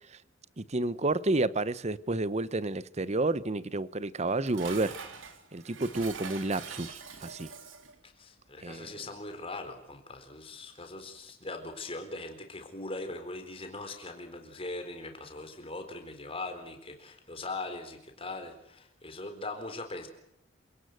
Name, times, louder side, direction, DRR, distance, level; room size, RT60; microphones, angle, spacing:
voice 1, 0.6-5.0 5.5-7.5 8.6-9.0, right 2 dB, 35° right, 0.8 m, -30 dB
Dishes pots and pans, 4.1-8.0, right 5 dB, 75° right, 3.6 m, -44 dB
voice 2, 8.0-20.1, left 2 dB, 30° left, 4.1 m, -40 dB
28.0 x 18.0 x 8.0 m
head